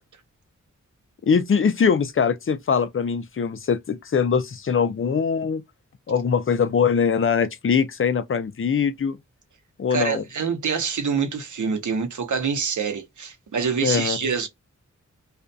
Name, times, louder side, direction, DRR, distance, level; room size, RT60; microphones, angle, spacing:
voice 1, 1.3-5.6 6.1-9.2 9.8-10.2 13.8-14.2, left 6 dB, 45° left, 0.5 m, -22 dB
voice 2, 9.9-14.5, right 6 dB, 75° right, 0.8 m, -26 dB
2.6 x 2.4 x 2.2 m
wide cardioid pair, 80°, 31 cm